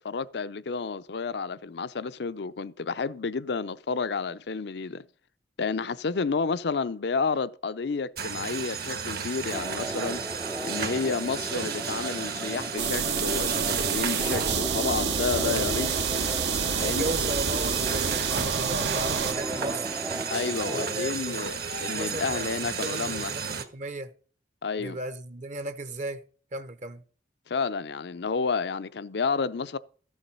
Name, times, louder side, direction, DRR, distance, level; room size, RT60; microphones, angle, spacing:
voice 1, 0.0-5.0 5.6-15.9 16.8-17.1 20.3-23.3 24.6-25.0 27.5-29.8, left 4 dB, 70° left, 0.6 m, -30 dB
sound 1, 8.2-23.6, right 6 dB, 60° right, 1.3 m, -33 dB
sound 2, 9.5-21.0, right 1 dB, 10° right, 0.4 m, -37 dB
sound 3, 12.8-19.3, right 6 dB, 80° right, 1.0 m, -28 dB
voice 2, 15.3-15.9 16.8-19.9 20.7-24.1 24.8-26.2 26.5-27.0, right 1 dB, 45° right, 0.8 m, -36 dB
13.5 x 7.2 x 5.4 m
head